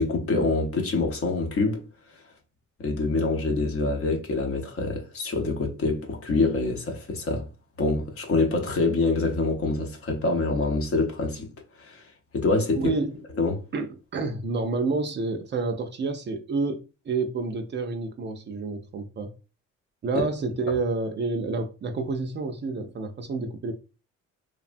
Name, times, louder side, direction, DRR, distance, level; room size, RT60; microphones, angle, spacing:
voice 1, 0.0-1.8 2.8-7.5 7.8-11.5 11.8-12.1 12.3-12.8 13.4-13.6 20.1-20.2, left 3 dB, 50° left, 0.8 m, -25 dB
voice 2, 12.7-13.2 13.7-19.3 20.0-23.7, right 3 dB, 35° right, 0.4 m, -29 dB
3.3 x 2.1 x 2.5 m
cardioid pair, 90°, 30 cm